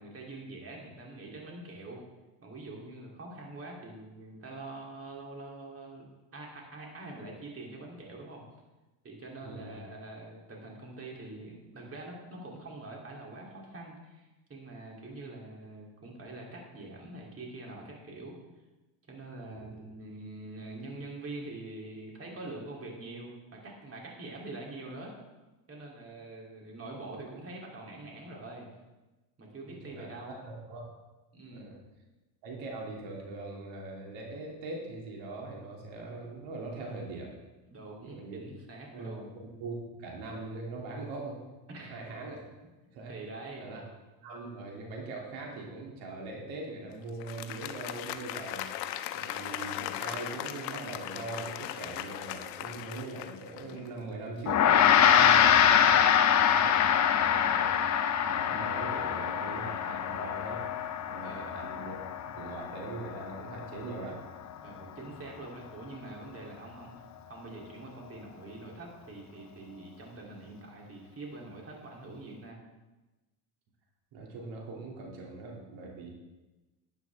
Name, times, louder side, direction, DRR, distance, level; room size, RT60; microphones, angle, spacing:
voice 1, 0.0-2.0 2.4-6.0 6.3-8.4 9.0-18.4 19.1-25.1 25.7-28.7 29.4-30.4 31.3-31.7 37.7-39.3 41.7-42.0 43.1-43.7 61.2-61.6 64.6-67.0 67.3-72.6, right 2 dB, 30° right, -2 dB, 3.2 m, -44 dB
voice 2, 9.4-9.8 19.5-19.8 29.7-30.9 31.5-31.7 32.4-37.4 38.0-38.4 38.9-41.4 41.8-42.4 42.9-43.2 43.6-43.8 44.2-48.7 49.1-57.8 58.2-60.6 61.1-64.2 74.1-76.1, right 3 dB, 65° right, -1 dB, 2.9 m, -41 dB
Applause, 47.1-54.1, left 12 dB, 90° left, 0.8 m, -38 dB
Gong, 54.5-64.0, left 9 dB, 35° left, 0.8 m, -25 dB
11.5 x 9.3 x 3.6 m, 1.1 s
supercardioid pair, 105°, 48 cm